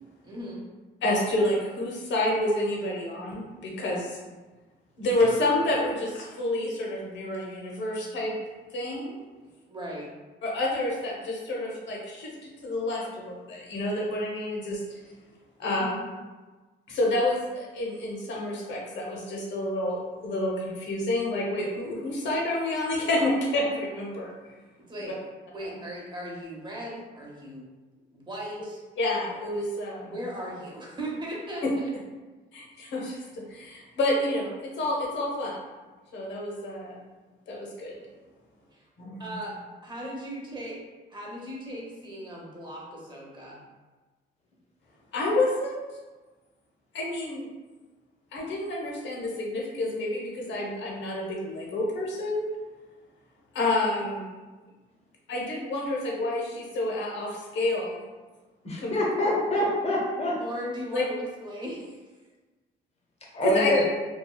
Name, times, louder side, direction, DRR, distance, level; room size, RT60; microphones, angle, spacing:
voice 1, 0.2-0.6 9.4-10.1 15.6-16.1 24.9-25.2 25.5-27.6 28.1-28.8 30.1-31.9 38.7-38.8 39.2-39.5 39.8-40.8 41.1-43.6 60.4-62.0, equal, 25° right, -4 dB, 0.8 m, -38 dB
voice 2, 1.0-4.2 5.0-8.3 8.7-9.2 10.4-12.3 12.6-15.0 15.6-15.9 16.9-24.3 29.0-30.1 31.6-31.7 32.5-35.6 36.1-37.0 37.5-37.9 39.0-39.3 45.1-45.8 46.9-47.5 48.3-52.5 53.5-54.3 55.3-58.0 58.8-59.0 60.9-61.0 63.4-63.7, left 1 dB, 65° left, -2 dB, 0.8 m, -29 dB
voice 3, 58.6-60.4 63.3-63.8, left 1 dB, 30° left, -2 dB, 0.7 m, -25 dB
2.7 x 2.2 x 2.2 m, 1.3 s
cardioid pair, 90°, 20 cm